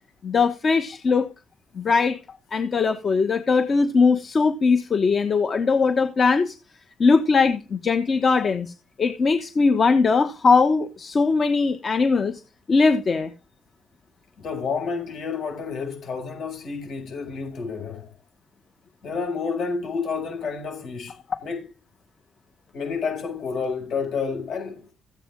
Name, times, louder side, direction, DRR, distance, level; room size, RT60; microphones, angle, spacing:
voice 1, 0.2-1.3 1.7-2.2 2.5-6.5 7.0-8.7 9.0-12.4 12.7-13.3, left 4 dB, 45° left, 1.3 m, -20 dB
voice 2, 14.4-18.1 19.0-21.1 21.4-21.6 22.7-24.9, left 5 dB, 70° left, 7.7 m, -29 dB
14.5 x 9.1 x 3.9 m
cardioid pair, 90°, 0 cm